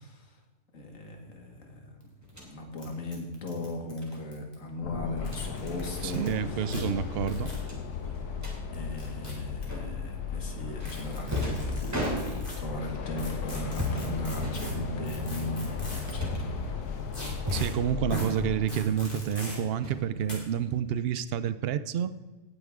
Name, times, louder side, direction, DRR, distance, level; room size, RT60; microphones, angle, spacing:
voice 1, 0.0-0.4 0.7-6.7 8.7-16.6, left 2 dB, 55° left, 3 dB, 2.2 m, -38 dB
sound 1, 2.0-2.1 2.3-2.4 2.8-2.9 3.1-4.5 5.1-6.3 6.7-6.8 7.3-7.6 8.7-9.6 10.8-12.6 13.2-16.2 17.1-17.7 18.1-18.3 18.7-19.6 20.3-20.4, equal, 35° left, 3.4 m, -40 dB
sound 2, 2.2-2.5 4.0-4.2 5.1-5.5 5.9-6.1 6.3-6.6 6.8-6.9 7.6-8.6 9.7-10.1 10.8-12.7 13.5-14.1 14.4-15.1 15.6-16.6 17.2-17.8 18.1-18.6 18.9-19.5 19.8-20.6, left 1 dB, 10° right, 2.7 m, -36 dB
sound 3, 4.8-18.7, left 6 dB, 75° left, 1.7 m, -36 dB
voice 2, 6.0-7.5 17.5-22.1, right 9 dB, 70° right, 14 dB, 0.6 m, -29 dB
17.5 x 9.8 x 3.6 m, 1.3 s
omnidirectional pair, 1.7 m